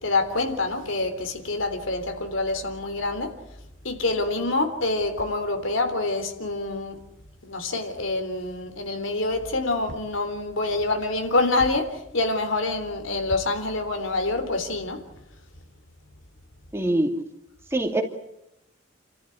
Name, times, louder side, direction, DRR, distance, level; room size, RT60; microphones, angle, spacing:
voice 1, 0.0-3.3 3.8-7.0 7.4-15.0, left 2 dB, 85° left, 3.5 m, -26 dB
voice 2, 16.7-17.2 17.7-18.0, right 1 dB, 15° right, 2.6 m, -23 dB
30.0 x 14.0 x 10.0 m
head